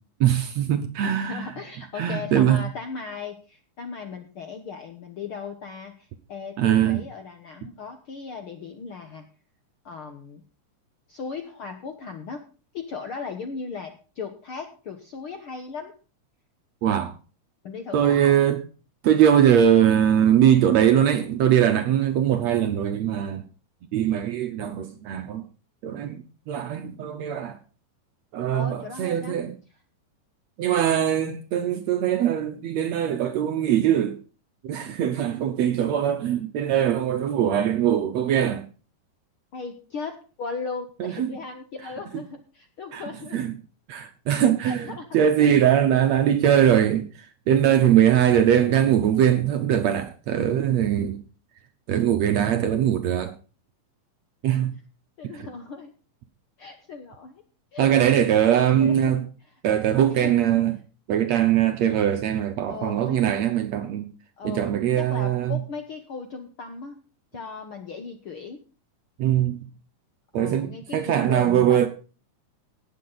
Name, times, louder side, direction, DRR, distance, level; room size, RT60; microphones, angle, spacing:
voice 1, 0.2-1.5 2.0-2.7 6.6-7.0 16.8-17.2 17.9-18.6 19.0-23.4 23.9-25.5 25.8-27.6 28.3-29.6 30.6-34.2 34.6-38.7 41.0-41.3 42.9-43.1 43.3-43.5 43.9-51.2 51.9-53.3 54.4-54.7 55.4-55.5 57.8-59.3 59.6-60.8 61.1-64.1 64.4-65.6 69.2-69.7 70.3-71.9, right 10 dB, 70° right, 1.8 m, -21 dB
voice 2, 1.0-9.3 9.8-10.4 11.1-12.4 12.7-15.9 17.6-18.4 28.5-29.4 39.5-43.4 44.6-45.0 45.4-45.5 55.2-55.9 56.6-57.3 57.7-58.2 58.8-59.3 59.9-60.5 62.7-63.4 64.4-67.0 67.3-68.6 70.4-71.9, left 5 dB, 65° left, 1.4 m, -37 dB
18.0 x 7.7 x 4.0 m
omnidirectional pair, 3.9 m